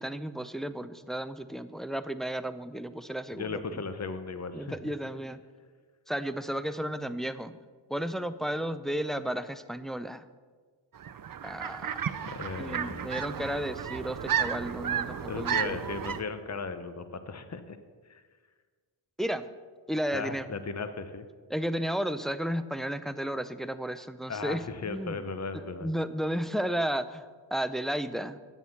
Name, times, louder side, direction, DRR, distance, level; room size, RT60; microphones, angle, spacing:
voice 1, 0.0-3.8 4.5-5.4 6.1-7.6 7.9-10.2 11.4-11.9 12.6-15.8 19.2-19.5 19.9-20.6 21.5-25.2 25.5-28.4, right 1 dB, ahead, 11 dB, 0.4 m, -33 dB
voice 2, 3.3-4.8 12.2-13.1 15.3-17.8 18.1-18.2 20.1-21.2 24.3-25.9, left 4 dB, 35° left, 10 dB, 0.9 m, -36 dB
sound 1, 11.0-16.2, right 8 dB, 45° right, 0.6 m, -33 dB
8.2 x 7.2 x 7.0 m, 1.5 s
cardioid pair, 50°, 49 cm